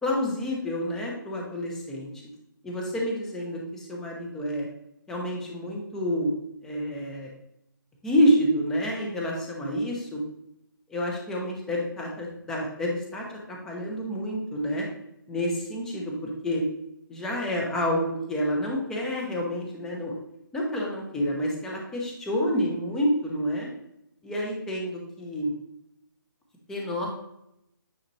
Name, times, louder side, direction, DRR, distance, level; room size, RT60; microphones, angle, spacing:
voice 1, 0.0-2.1 2.6-4.7 5.1-6.3 6.6-7.3 8.0-10.2 10.9-14.9 15.3-16.6 17.1-20.1 20.5-23.7 24.2-25.5 26.7-27.2, equal, 5° left, -2 dB, 0.7 m, -28 dB
8.9 x 4.0 x 3.0 m, 0.82 s
hypercardioid pair, 165°, 12 cm